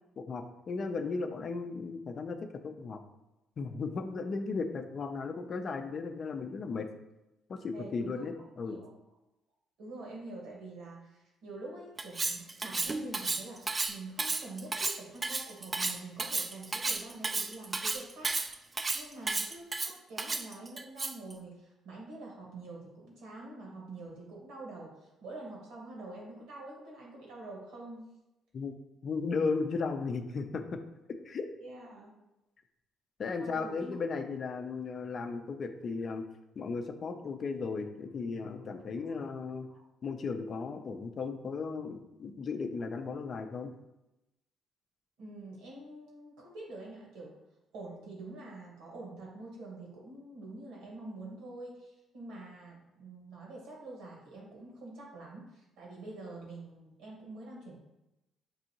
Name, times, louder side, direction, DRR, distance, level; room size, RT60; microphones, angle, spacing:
voice 1, 0.2-2.4 2.6-3.0 3.6-6.9 7.5-8.8 28.5-28.7 29.0-30.8 31.2-31.5 33.2-36.2 36.6-39.7 40.0-43.7, left 4 dB, 50° left, 7 dB, 0.5 m, -35 dB
voice 2, 7.7-8.2 8.6-8.9 9.8-28.1 31.6-32.2 33.4-34.0 39.0-39.2 39.7-39.8 45.2-47.4 47.7-57.8, right 2 dB, 80° right, -3 dB, 1.4 m, -46 dB
Cutlery silverware, 12.0-21.3, right 3 dB, 30° right, 0.3 m, -33 dB
6.1 x 2.6 x 2.8 m, 0.95 s
supercardioid pair, 70°, 0 cm